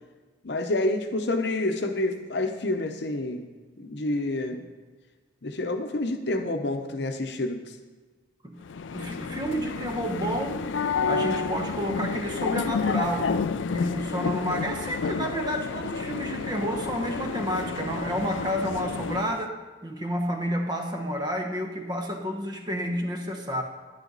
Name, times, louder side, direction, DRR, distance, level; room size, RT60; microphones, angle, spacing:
voice 1, 0.4-3.4 3.8-4.6 5.4-7.6, left 2 dB, 65° left, 5 dB, 0.9 m, -28 dB
sound 1, 8.6-19.5, left 5 dB, 80° left, 0.4 m, -30 dB
voice 2, 8.9-10.6 11.1-13.3 13.7-19.6 19.8-23.6, equal, 20° right, 3 dB, 1.0 m, -30 dB
11.0 x 10.0 x 4.0 m, 1.3 s
head